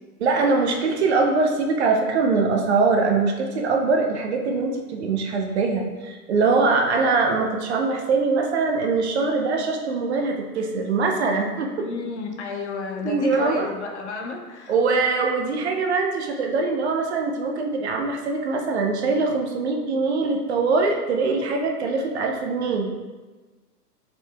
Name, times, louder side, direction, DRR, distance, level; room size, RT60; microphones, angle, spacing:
voice 1, 0.2-11.9 13.0-13.7 14.7-22.9, right 4 dB, 45° right, 2 dB, 0.5 m, -22 dB
voice 2, 11.8-14.7, left 4 dB, 45° left, 3 dB, 0.5 m, -32 dB
4.4 x 4.1 x 2.3 m, 1.3 s
figure-of-eight pair, 110°, 48 cm